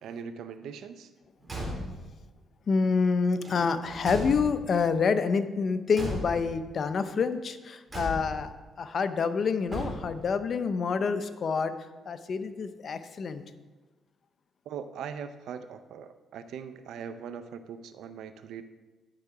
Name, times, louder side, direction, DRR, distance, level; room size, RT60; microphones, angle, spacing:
voice 1, 0.0-1.1 14.7-18.6, right 7 dB, 75° right, 10 dB, 0.5 m, -40 dB
Car / Truck / Slam, 1.4-2.2 3.4-4.8 5.9-6.7 7.9-8.6 9.7-10.3, equal, 20° right, 2.5 m, -36 dB
voice 2, 2.7-8.5 8.8-11.7 12.1-13.5, left 5 dB, 50° left, 10 dB, 0.6 m, -27 dB
10.5 x 4.9 x 4.7 m, 1.2 s
cardioid pair, 90°, 0 cm